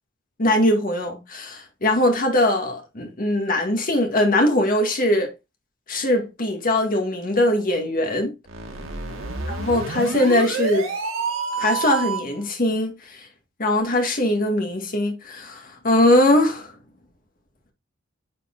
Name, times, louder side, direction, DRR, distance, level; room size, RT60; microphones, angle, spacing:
voice 1, 0.4-5.3 5.9-8.3 9.6-10.9 11.6-13.2 13.6-16.7, left 1 dB, 45° left, 1.9 m, -21 dB
sound 1, 8.5-12.4, right 4 dB, 85° right, 2.1 m, -28 dB
9.3 x 5.3 x 2.5 m
head